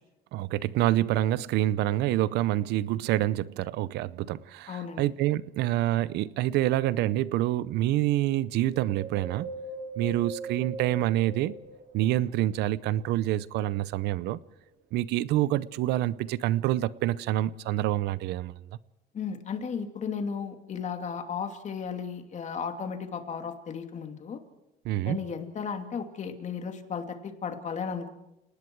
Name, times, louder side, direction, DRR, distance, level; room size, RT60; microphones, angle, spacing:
voice 1, 0.3-9.5 10.0-11.5 11.9-14.4 14.9-18.5 24.8-25.2, right 14 dB, 85° right, 0.7 m, -27 dB
voice 2, 4.7-5.0 19.1-24.4 25.0-28.1, left 6 dB, 45° left, 2.7 m, -34 dB
Wind, 8.7-12.3 12.8-14.0 14.6-14.7, right 3 dB, 65° right, 4.7 m, -41 dB
30.0 x 19.0 x 4.7 m
cardioid pair, 110°, 17 cm